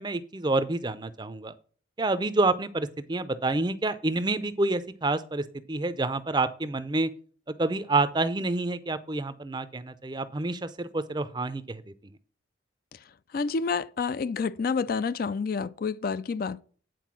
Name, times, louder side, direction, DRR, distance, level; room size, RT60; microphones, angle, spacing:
voice 1, 0.0-1.5 2.0-7.1 7.5-11.8, right 2 dB, 25° right, 0.5 m, -28 dB
voice 2, 13.3-16.6, left 5 dB, 50° left, 0.3 m, -29 dB
9.3 x 4.4 x 6.0 m
head